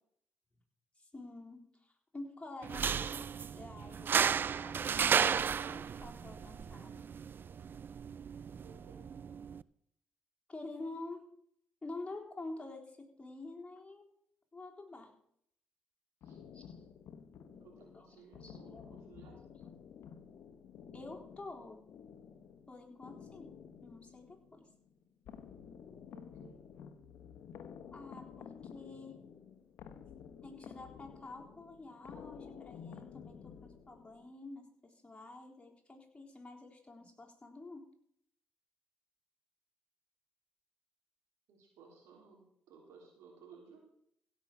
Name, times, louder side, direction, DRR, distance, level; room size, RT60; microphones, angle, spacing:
voice 1, 1.0-3.3 3.6-7.1 10.5-11.3 11.8-14.1 14.5-15.1 16.5-16.8 17.8-18.1 18.3-19.0 20.9-21.9 22.7-24.7 27.9-29.2 30.4-37.9, left 2 dB, 25° left, 0 dB, 3.8 m, -49 dB
sound 1, 2.6-9.6, right 7 dB, 50° right, 0.4 m, -34 dB
voice 2, 8.6-9.1 16.2-16.4 17.5-19.4 26.1-26.6 41.5-43.8, right 5 dB, 80° right, 0 dB, 3.4 m, -58 dB
sound 2, 16.2-34.3, left 7 dB, 70° left, 1.1 m, -52 dB
16.0 x 6.2 x 6.6 m, 0.68 s
supercardioid pair, 55°, 5 cm